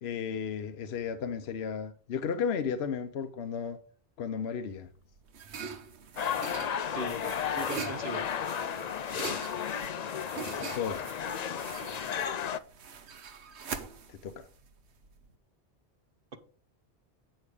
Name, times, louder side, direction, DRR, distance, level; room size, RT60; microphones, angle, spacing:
voice 1, 0.0-3.8 4.2-4.9 10.4-11.0 14.1-14.5, left 7 dB, 70° left, 1.0 m, -34 dB
sound 1, 4.7-15.3, right 6 dB, 80° right, 1.2 m, -43 dB
sound 2, 6.2-12.6, left 8 dB, 50° left, 0.5 m, -33 dB
voice 2, 7.5-8.3 16.3-16.4, right 3 dB, 55° right, 1.1 m, -38 dB
8.9 x 6.3 x 4.9 m
omnidirectional pair, 1.1 m